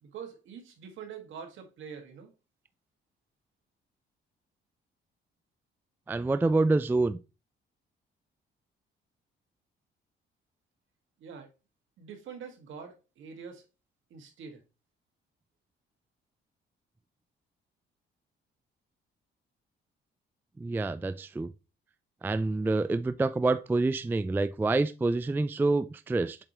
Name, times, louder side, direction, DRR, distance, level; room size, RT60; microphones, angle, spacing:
voice 1, 0.0-2.3 11.2-11.5 12.0-13.7 14.1-14.6, right 6 dB, 75° right, 1.8 m, -45 dB
voice 2, 6.1-7.2 20.6-21.5 22.2-26.4, right 3 dB, 10° right, 0.3 m, -27 dB
7.4 x 4.6 x 3.0 m
cardioid pair, 90°, 20 cm